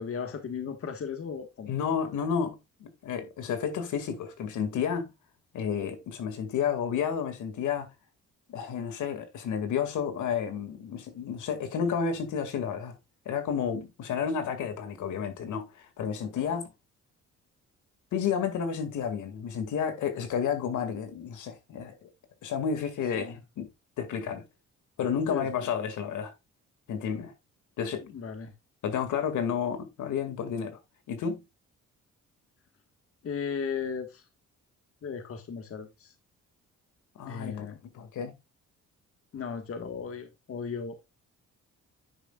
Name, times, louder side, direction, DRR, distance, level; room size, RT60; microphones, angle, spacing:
voice 1, 0.0-1.7 23.1-23.4 25.3-25.5 28.0-28.5 33.2-34.3 35.0-36.1 37.2-37.8 39.3-41.0, left 6 dB, 50° left, 1.5 m, -36 dB
voice 2, 1.7-5.1 5.5-7.9 8.5-13.0 13.3-16.7 18.1-22.1 22.4-23.7 24.0-24.4 25.0-26.3 26.9-27.3 27.8-28.0 28.8-30.8 31.1-31.4 37.2-37.7 37.9-38.4, left 7 dB, 75° left, 2.1 m, -31 dB
10.0 x 6.6 x 2.3 m
cardioid pair, 90°, 30 cm